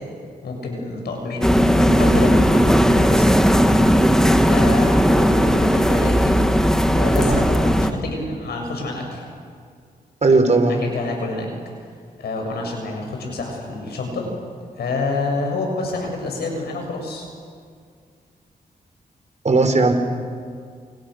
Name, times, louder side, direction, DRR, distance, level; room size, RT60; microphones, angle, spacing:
voice 1, 0.4-3.3 4.5-6.3 6.9-9.2 10.7-11.5 12.2-14.3 14.8-17.3, left 3 dB, 85° left, 1 dB, 7.3 m, -28 dB
sound 1, 1.4-7.9, equal, 5° left, 2.1 m, -16 dB
voice 2, 10.2-10.8 19.4-19.9, right 3 dB, 45° right, 6 dB, 4.5 m, -17 dB
29.0 x 28.0 x 6.6 m, 2.1 s
cardioid pair, 60°, 16 cm